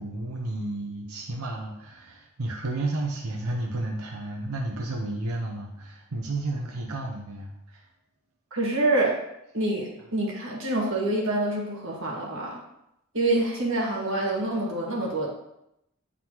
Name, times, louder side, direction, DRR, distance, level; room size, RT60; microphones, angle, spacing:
voice 1, 0.0-7.9, right 2 dB, 80° right, 0 dB, 0.8 m, -32 dB
voice 2, 8.5-9.2 9.5-12.6 13.1-15.3, right 2 dB, 60° right, -3 dB, 1.8 m, -26 dB
9.5 x 3.8 x 3.0 m, 0.82 s
head